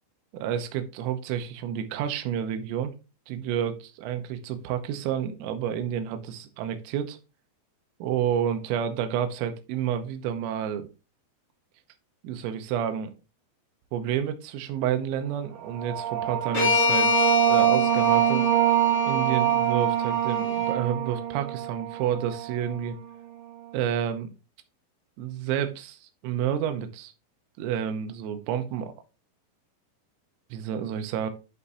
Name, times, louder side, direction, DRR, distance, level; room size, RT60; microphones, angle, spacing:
voice 1, 0.3-2.9 3.3-7.2 8.0-10.9 12.2-13.2 13.9-18.5 19.1-23.0 23.7-24.3 25.2-27.1 27.6-28.9 30.5-31.3, right 9 dB, 90° right, 7 dB, 3.5 m, -30 dB
sound 1, 15.6-22.9, right 11 dB, 65° right, 2.8 m, -25 dB
sound 2, 16.5-20.7, left 5 dB, 35° left, 2.9 m, -28 dB
11.0 x 5.5 x 2.6 m, 0.30 s
omnidirectional pair, 5.8 m